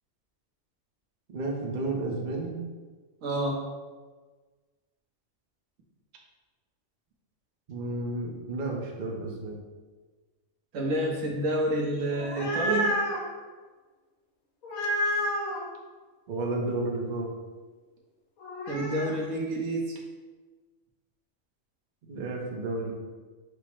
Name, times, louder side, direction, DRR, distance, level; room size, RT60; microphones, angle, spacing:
voice 1, 1.3-2.6 7.7-9.6 16.3-17.3 22.1-22.9, right 2 dB, 50° right, 0 dB, 0.6 m, -32 dB
voice 2, 3.2-3.6 10.7-12.9 18.7-19.9, right 1 dB, 70° right, -1 dB, 1.2 m, -28 dB
sound 1, 12.1-13.2 14.6-15.6 18.4-19.1, equal, 85° left, 1.3 m, -29 dB
4.8 x 2.0 x 4.4 m, 1.4 s
omnidirectional pair, 1.5 m